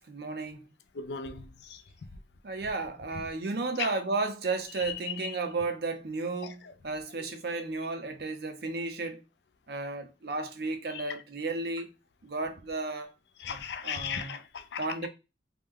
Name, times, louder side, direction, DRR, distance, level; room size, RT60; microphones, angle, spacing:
voice 1, 0.1-0.6 2.4-9.2 9.7-11.9 12.2-13.1 13.5-13.6 13.8-14.4 14.8-15.1, right 3 dB, 60° right, 0.6 m, -33 dB
voice 2, 0.9-1.8 3.8-4.0 4.8-5.3 6.4-6.7 10.9-11.2 13.4-15.0, left 7 dB, 70° left, 0.4 m, -37 dB
3.2 x 2.1 x 3.5 m
head